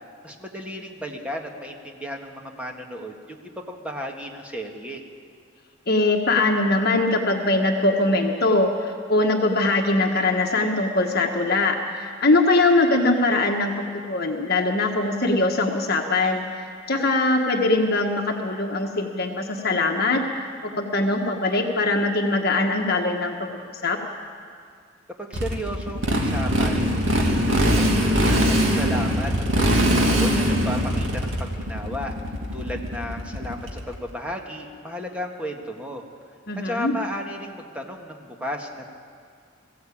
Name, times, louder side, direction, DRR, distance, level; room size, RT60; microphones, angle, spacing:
voice 1, 0.2-5.0 25.2-26.9 27.2-36.0 36.6-38.9, equal, 5° right, 1 dB, 1.8 m, -34 dB
voice 2, 5.9-16.4 16.9-20.2 20.6-23.3 23.8-24.0 36.5-36.9, left 2 dB, 50° left, 2 dB, 1.4 m, -22 dB
Motorcycle, 25.3-34.0, equal, 75° right, 2.4 m, -22 dB
21.0 x 15.5 x 8.6 m, 2.2 s
head